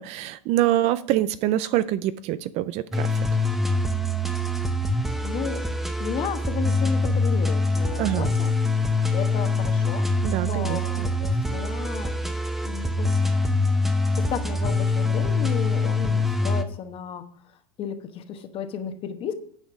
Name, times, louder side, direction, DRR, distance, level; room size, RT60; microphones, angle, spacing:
voice 1, 0.0-3.2 8.0-8.3 10.2-11.1, right 13 dB, 35° right, 15 dB, 0.4 m, -25 dB
sound 1, 2.9-16.6, left 2 dB, ahead, 0.7 m, -24 dB
voice 2, 5.2-5.7 6.0-8.5 9.1-12.2 12.6-13.1 14.1-19.3, left 7 dB, 30° left, 9 dB, 1.1 m, -33 dB
9.2 x 5.3 x 6.1 m, 0.62 s
hypercardioid pair, 130°, 18 cm